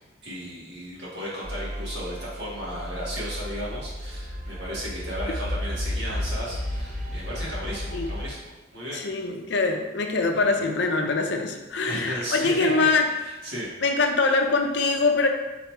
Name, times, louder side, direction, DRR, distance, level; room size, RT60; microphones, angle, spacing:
voice 1, 0.2-9.0 9.5-9.6 10.3-10.5 11.8-12.9 13.2-13.7, equal, 60° right, -7 dB, 1.6 m, -35 dB
sound 1, 1.4-8.3, left 1 dB, 40° right, 0.6 m, -33 dB
voice 2, 8.9-13.1 13.8-15.3, left 3 dB, 65° left, 4 dB, 0.5 m, -23 dB
3.8 x 3.0 x 4.5 m, 1.1 s
head